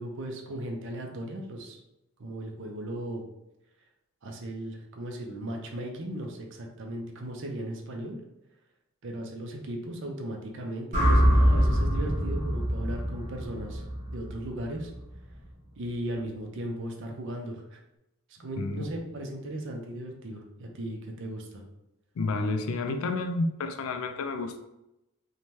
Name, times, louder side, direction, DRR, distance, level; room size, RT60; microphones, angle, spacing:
voice 1, 0.0-1.8 2.2-3.2 4.2-8.2 9.0-13.8 14.1-14.9 15.8-17.8 18.4-21.6, right 1 dB, 60° right, 2 dB, 0.5 m, -37 dB
sound 1, 10.9-15.1, equal, 35° right, 1.0 m, -24 dB
voice 2, 18.6-18.9 22.2-24.6, left 3 dB, 75° left, 6 dB, 0.3 m, -30 dB
2.7 x 2.2 x 3.1 m, 0.90 s
head